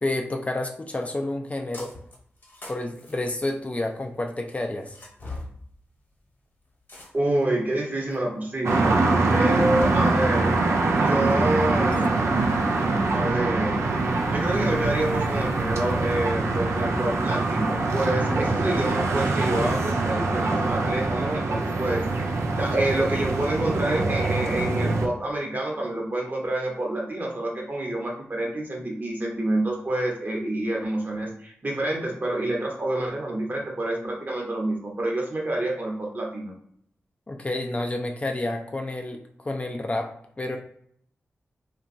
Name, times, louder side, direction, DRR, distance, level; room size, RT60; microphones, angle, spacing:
voice 1, 0.0-1.9 2.7-5.0 11.9-12.0 37.3-40.6, left 2 dB, 30° left, 4 dB, 0.4 m, -30 dB
sound 1, 1.7-2.2 2.4-4.0 4.8-5.5 6.9-7.4 8.1-8.2 9.3-9.9, left 2 dB, 45° left, 1.0 m, -40 dB
voice 2, 7.1-9.0 9.3-10.6 11.0-12.1 13.1-13.8 14.3-22.3 22.6-36.5, right 1 dB, 40° right, -1 dB, 0.9 m, -27 dB
sound 2, 8.6-25.1, right 3 dB, 80° right, 0.3 m, -24 dB
2.9 x 2.2 x 2.6 m, 0.66 s
cardioid pair, 50°, 5 cm